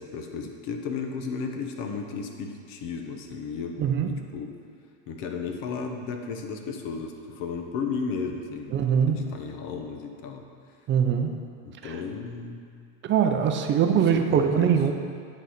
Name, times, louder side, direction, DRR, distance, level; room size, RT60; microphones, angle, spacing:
voice 1, 0.0-3.8 4.0-4.5 5.1-8.8 9.0-10.5 11.8-12.6 14.1-14.8, left 5 dB, 55° left, 4 dB, 1.1 m, -34 dB
voice 2, 3.8-4.1 8.7-9.2 10.9-11.4 11.8-11.9 13.1-14.9, right 8 dB, 30° right, 5 dB, 0.6 m, -22 dB
8.9 x 4.2 x 6.5 m, 2.2 s
supercardioid pair, 125°, 40 cm